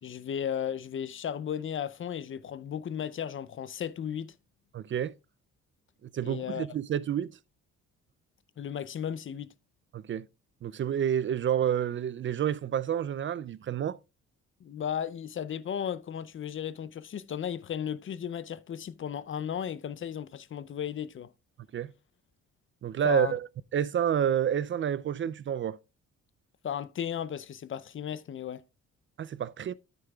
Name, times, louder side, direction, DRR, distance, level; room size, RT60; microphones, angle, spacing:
voice 1, 0.0-4.3 6.2-6.7 8.6-9.5 14.6-21.3 23.0-23.3 26.6-28.6, left 8 dB, 40° left, 0.5 m, -35 dB
voice 2, 4.7-5.1 6.1-7.3 9.9-10.3 10.6-14.0 21.7-21.9 22.8-25.8 29.2-29.7, right 9 dB, 40° right, 0.4 m, -29 dB
9.8 x 8.9 x 2.3 m
cardioid pair, 90°, 30 cm